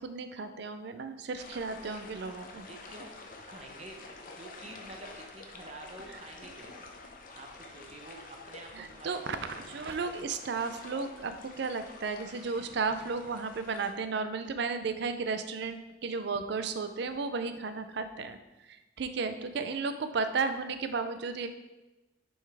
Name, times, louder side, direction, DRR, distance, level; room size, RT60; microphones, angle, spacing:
voice 1, 0.0-2.7 8.8-18.4 18.7-21.5, right 4 dB, 60° right, 9 dB, 0.4 m, -34 dB
sound 1, 1.4-13.9, left 3 dB, 45° left, 0.7 m, -48 dB
voice 2, 2.6-3.1 3.5-4.0 4.4-6.8 7.3-9.7, right 2 dB, 35° right, 2 dB, 0.9 m, -48 dB
6.5 x 5.4 x 3.4 m, 1.1 s
head